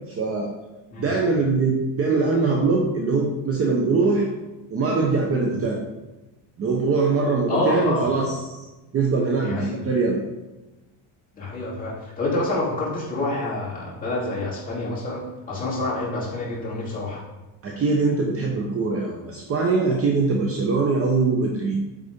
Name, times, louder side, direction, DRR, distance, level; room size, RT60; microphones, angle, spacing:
voice 1, 0.1-0.5 1.0-4.3 4.7-5.8 6.6-8.7 8.9-10.2 17.6-21.8, right 4 dB, 30° right, 0 dB, 0.8 m, -22 dB
voice 2, 7.5-8.1 9.4-9.8 11.3-17.2, left 2 dB, 15° left, -7 dB, 2.8 m, -27 dB
8.4 x 4.1 x 5.1 m, 1.1 s
cardioid pair, 155°, 46 cm